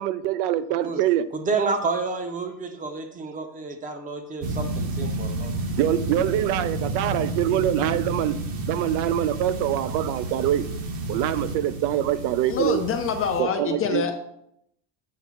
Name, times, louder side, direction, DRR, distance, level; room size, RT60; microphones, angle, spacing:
voice 1, 0.0-1.3 5.8-8.4 8.7-10.6 11.1-12.8 13.4-14.0, right 12 dB, 80° right, 14 dB, 0.6 m, -24 dB
voice 2, 1.3-5.5, right 4 dB, 15° right, 7 dB, 0.6 m, -29 dB
sound 1, 4.4-13.4, right 2 dB, 45° right, 0.9 m, -31 dB
voice 3, 12.5-14.1, left 6 dB, 30° left, 5 dB, 0.4 m, -26 dB
7.5 x 3.2 x 6.1 m, 0.75 s
cardioid pair, 150°, 49 cm